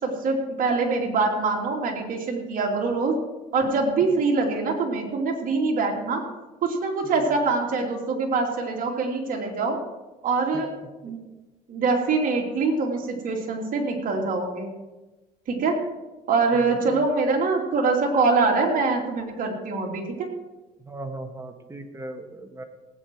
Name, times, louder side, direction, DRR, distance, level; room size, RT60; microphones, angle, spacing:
voice 1, 0.0-3.2 3.5-6.2 6.6-9.8 10.2-10.7 11.0-11.2 11.7-14.7 15.5-15.8 16.3-20.3, right 4 dB, 55° right, 0 dB, 2.9 m, -24 dB
voice 2, 20.9-22.6, right 2 dB, 15° right, 5 dB, 1.5 m, -37 dB
18.0 x 9.0 x 4.7 m, 1.1 s
cardioid pair, 110°, 17 cm